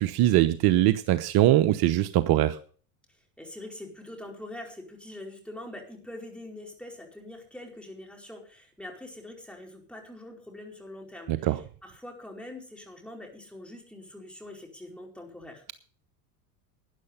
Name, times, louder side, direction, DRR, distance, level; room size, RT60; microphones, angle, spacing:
voice 1, 0.0-2.6 11.3-11.6, right 14 dB, 55° right, 12 dB, 0.9 m, -22 dB
voice 2, 3.4-15.6, left 1 dB, ahead, 1 dB, 4.7 m, -44 dB
13.0 x 9.9 x 5.6 m, 0.43 s
hypercardioid pair, 90°, 47 cm